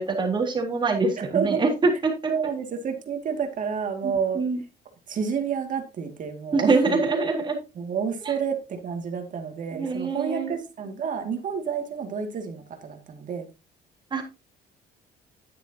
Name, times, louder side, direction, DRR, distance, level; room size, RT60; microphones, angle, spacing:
voice 1, 0.0-2.3 4.0-4.6 6.5-7.6 8.2-8.3 9.7-10.5 14.1-14.2, right 3 dB, 25° right, 1 dB, 3.8 m, -24 dB
voice 2, 1.2-1.6 2.3-4.4 5.1-7.0 7.7-13.5, right 6 dB, 50° right, 5 dB, 2.5 m, -29 dB
11.0 x 10.0 x 2.9 m, 0.28 s
cardioid pair, 110°, 17 cm